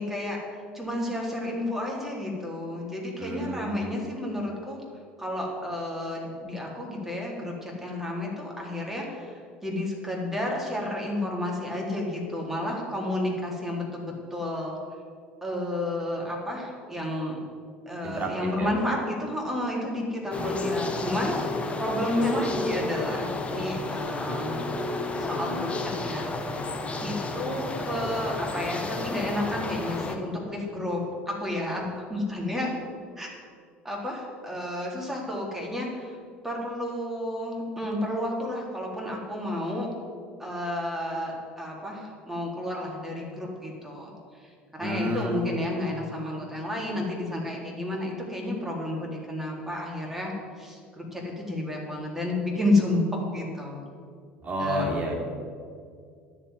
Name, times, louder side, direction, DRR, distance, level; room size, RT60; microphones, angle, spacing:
voice 1, 0.0-4.8 5.2-14.7 15.4-17.4 17.9-24.6 25.2-26.7 27.0-32.8 33.2-33.3 33.8-36.2 36.4-39.9 40.4-50.3 50.6-53.8 54.6-55.0, left 1 dB, 5° right, -2 dB, 3.8 m, -31 dB
voice 2, 3.2-3.8 18.0-18.3 18.6-18.7 20.3-20.6 44.8-45.5 54.4-55.1, equal, 30° right, -1 dB, 3.3 m, -30 dB
sound 1, 20.3-30.2, left 2 dB, 20° left, 1.4 m, -31 dB
11.0 x 7.2 x 9.6 m, 2.2 s
figure-of-eight pair, 70°, 6 cm